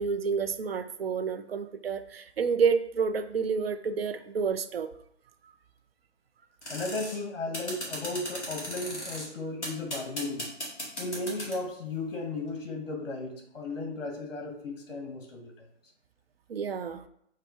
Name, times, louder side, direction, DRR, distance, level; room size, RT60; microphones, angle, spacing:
voice 1, 0.0-4.9 16.5-17.0, right 6 dB, 55° right, 9 dB, 0.4 m, -29 dB
sound 1, 6.6-7.2 7.5-9.3 9.6-11.6, equal, 5° left, 0.6 m, -36 dB
voice 2, 6.7-10.5 11.0-15.6, left 2 dB, 50° left, 2 dB, 1.1 m, -35 dB
4.2 x 2.5 x 4.4 m, 0.71 s
hypercardioid pair, 160°, 36 cm